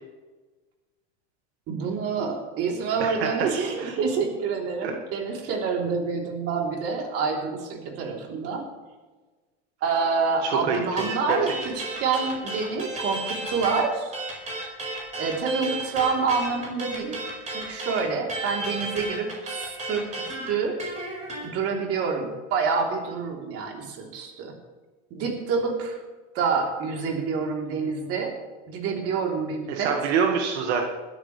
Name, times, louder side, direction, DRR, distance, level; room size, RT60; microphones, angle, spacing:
voice 1, 1.7-8.7 9.8-14.1 15.2-17.2 17.5-20.8 21.4-24.5 25.1-26.0 26.3-28.3 28.7-30.0, right 5 dB, 45° right, 0 dB, 3.5 m, -27 dB
voice 2, 3.0-3.3 3.8-3.9 4.8-4.9 10.4-11.4 29.7-30.9, right 6 dB, 85° right, 2 dB, 1.9 m, -26 dB
sound 1, 11.0-13.8 14.1-21.5, right 2 dB, 20° right, 4.8 m, -33 dB
20.0 x 13.5 x 3.3 m, 1.3 s
supercardioid pair, 140°, 32 cm